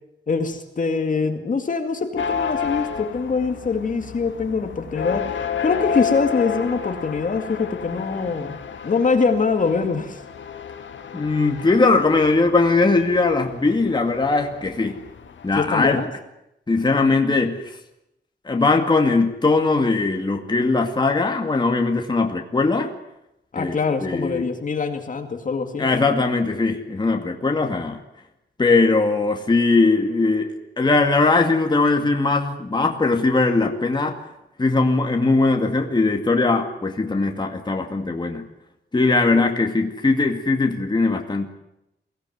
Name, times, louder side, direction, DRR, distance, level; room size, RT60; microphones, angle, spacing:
voice 1, 0.3-8.6 8.8-10.2 15.5-16.1 23.5-26.0 39.3-39.4, left 4 dB, 45° left, 6 dB, 2.2 m, -24 dB
sound 1, 2.2-16.1, left 7 dB, 80° left, 1.9 m, -31 dB
voice 2, 11.1-15.0 15.4-16.0 16.7-17.6 18.5-22.9 23.6-23.8 24.0-24.5 25.8-28.0 28.6-30.5 30.8-34.2 34.6-38.5 38.9-41.5, left 3 dB, 25° left, 3 dB, 2.2 m, -20 dB
23.0 x 17.5 x 9.4 m, 0.85 s
wide cardioid pair, 165°, 19 cm